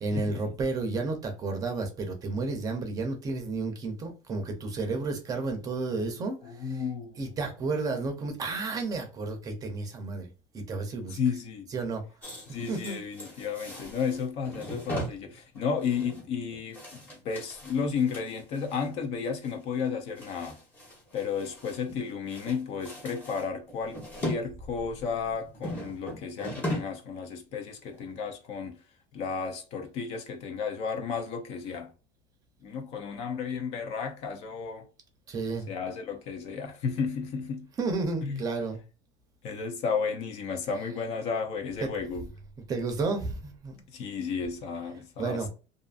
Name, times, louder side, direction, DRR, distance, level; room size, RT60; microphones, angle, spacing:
voice 1, 0.0-6.4 6.6-6.8 7.2-11.2 11.7-12.0 12.7-13.0 35.3-35.7 37.8-38.8 41.8-41.9 42.7-43.8 45.2-45.5, right 3 dB, 25° right, 0.6 m, -32 dB
voice 2, 6.4-7.3 11.1-11.7 12.5-20.6 21.1-28.8 29.1-31.9 32.6-34.9 35.7-37.7 38.2-38.4 39.4-42.3 43.9-45.5, left 6 dB, 50° left, 0.6 m, -33 dB
sound 1, 12.2-18.9 19.3-19.5 19.8-22.0 22.3-24.4 24.8-27.1 27.3-27.5 27.9-28.0, equal, 10° left, 0.9 m, -39 dB
2.6 x 2.5 x 2.4 m
cardioid pair, 160°, 14 cm